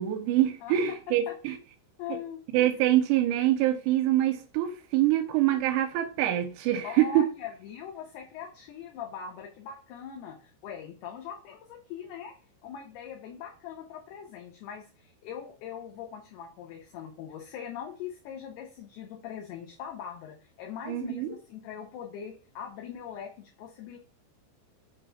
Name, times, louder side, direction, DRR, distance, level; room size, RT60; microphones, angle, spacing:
voice 1, 0.0-1.6 2.5-7.3 20.9-21.3, right 13 dB, 85° right, 2.6 m, -25 dB
voice 2, 2.0-2.4 6.8-12.3 12.6-24.0, left 8 dB, 75° left, 2.6 m, -41 dB
7.0 x 3.2 x 5.5 m
omnidirectional pair, 5.4 m